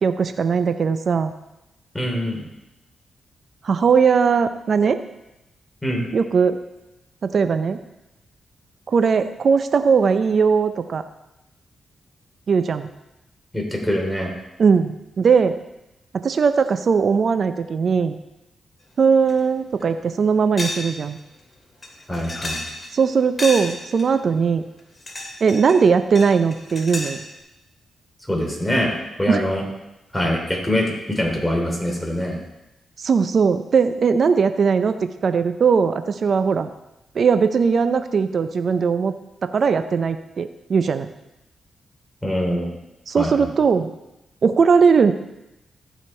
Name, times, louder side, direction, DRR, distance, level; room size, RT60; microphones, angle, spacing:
voice 1, 0.0-1.3 3.6-5.0 6.1-6.6 7.2-7.8 8.9-11.0 12.5-12.9 14.6-15.5 16.1-18.2 19.0-21.2 22.9-24.6 25.4-27.2 29.3-29.4 33.0-34.9 35.2-36.7 37.1-39.1 39.4-41.1 43.1-43.9 44.4-45.1, right 5 dB, 60° right, 10 dB, 0.6 m, -19 dB
voice 2, 1.9-2.4 5.8-6.0 13.5-14.3 22.1-22.6 28.3-28.9 29.2-29.6 30.1-32.4 42.2-42.7 43.1-43.5, equal, 10° left, 0 dB, 3.2 m, -23 dB
sound 1, 19.3-19.4 19.8-19.9 20.6-20.9 21.2-21.3 21.8-23.0 23.4-24.1 24.8-25.8 26.2-27.2, left 2 dB, 30° left, 2.4 m, -31 dB
15.0 x 5.2 x 4.3 m, 0.92 s
supercardioid pair, 55°, 0 cm